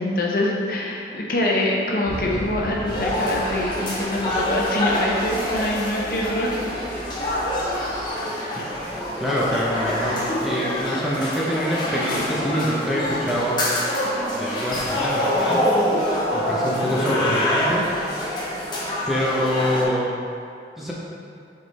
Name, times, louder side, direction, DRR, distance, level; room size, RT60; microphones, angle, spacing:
voice 1, 0.0-6.7, left 1 dB, 50° left, -2 dB, 0.8 m, -24 dB
sound 1, 2.0-8.1, equal, 65° right, 1.5 m, -37 dB
sound 2, 2.9-19.8, left 1 dB, 25° left, 0.9 m, -25 dB
voice 2, 9.2-13.6 14.3-15.6 16.3-17.8 18.1-18.2 19.1-20.1 20.8-20.9, equal, ahead, -6 dB, 0.6 m, -25 dB
6.5 x 3.6 x 4.1 m, 2.5 s
head